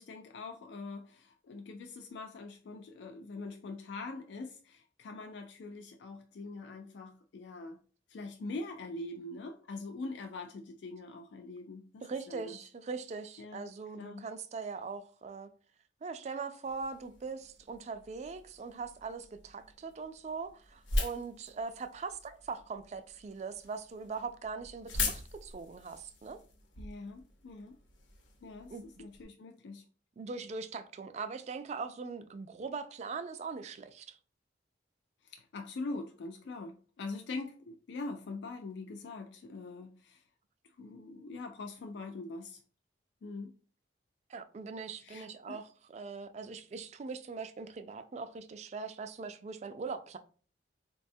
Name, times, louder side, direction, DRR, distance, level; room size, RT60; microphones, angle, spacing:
voice 1, 0.0-7.8 8.1-12.6 13.4-13.7 14.0-14.2 26.8-27.8 28.4-29.9 35.2-40.2 40.6-42.6 43.2-43.6 45.0-45.6, left 3 dB, 70° left, 0.3 m, -43 dB
voice 2, 12.0-15.5 16.0-26.4 28.7-29.0 30.2-34.2 44.3-50.2, right 4 dB, 35° right, 0.3 m, -41 dB
sound 1, 16.6-29.2, left 2 dB, 85° left, 0.7 m, -42 dB
4.1 x 2.2 x 2.6 m
head